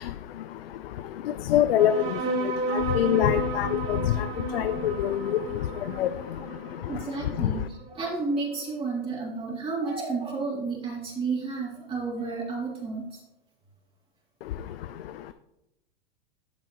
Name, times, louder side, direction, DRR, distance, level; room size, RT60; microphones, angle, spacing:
voice 1, 1.5-1.9 3.0-3.7 4.5-5.2 6.0-6.1, left 11 dB, 75° left, 13 dB, 0.5 m, -22 dB
sound 1, 1.8-8.7, right 2 dB, 80° right, 3.3 m, -33 dB
voice 2, 6.9-13.0, right 4 dB, 20° right, -4 dB, 3.0 m, -31 dB
12.5 x 5.4 x 3.0 m, 0.87 s
hypercardioid pair, 115°, 29 cm